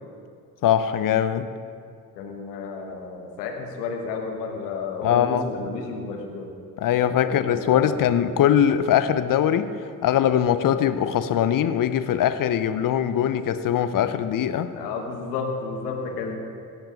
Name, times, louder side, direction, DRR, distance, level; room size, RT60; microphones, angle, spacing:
voice 1, 0.6-1.5 5.0-5.5 6.8-9.7 10.0-14.7, left 10 dB, 45° left, 12 dB, 0.8 m, -21 dB
voice 2, 2.2-6.5 7.2-8.1 14.7-16.4, left 4 dB, 80° left, 3 dB, 1.4 m, -32 dB
17.5 x 6.1 x 5.2 m, 2.4 s
hypercardioid pair, 45°, 47 cm